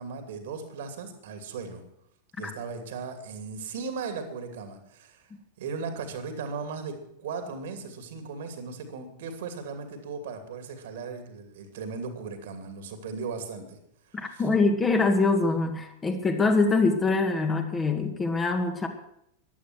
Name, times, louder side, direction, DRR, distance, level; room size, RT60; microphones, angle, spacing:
voice 1, 0.0-1.8 2.4-5.3 5.6-13.8 14.1-14.4, right 5 dB, 55° right, 7 dB, 2.7 m, -37 dB
voice 2, 14.1-18.9, left 3 dB, 15° left, 5 dB, 2.1 m, -24 dB
15.0 x 11.5 x 6.2 m, 0.75 s
figure-of-eight pair, 90°, 0 cm